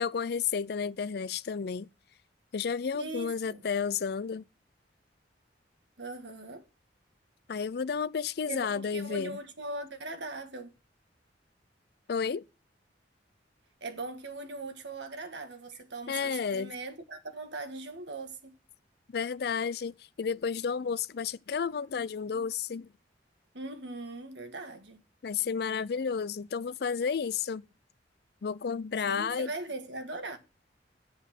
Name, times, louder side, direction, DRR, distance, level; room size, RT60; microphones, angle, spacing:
voice 1, 0.0-1.9 2.5-4.4 7.5-9.4 12.1-12.4 16.1-16.7 19.1-22.9 25.2-27.6 28.4-29.5, left 6 dB, 60° left, 0.4 m, -32 dB
voice 2, 2.9-3.6 6.0-6.6 8.5-10.7 13.8-18.6 23.5-25.0 29.1-30.4, right 2 dB, 75° right, 1.7 m, -40 dB
8.0 x 7.7 x 6.0 m
head